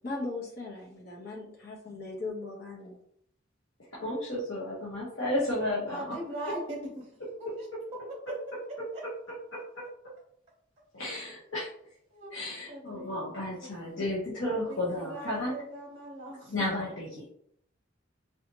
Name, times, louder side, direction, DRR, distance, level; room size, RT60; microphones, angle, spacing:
voice 1, 0.0-3.0, left 3 dB, 55° left, -3 dB, 1.2 m, -38 dB
voice 2, 3.9-6.2 6.5-6.6 9.5-9.9 10.9-11.7 12.3-15.6 16.5-17.3, left 1 dB, 85° left, -7 dB, 1.2 m, -33 dB
voice 3, 5.9-7.1 7.6-7.7 8.3-8.4 8.9-9.0 11.1-11.2 12.1-13.2 14.7-16.5, right 1 dB, 35° right, -1 dB, 1.0 m, -40 dB
4.0 x 2.9 x 2.9 m, 0.69 s
head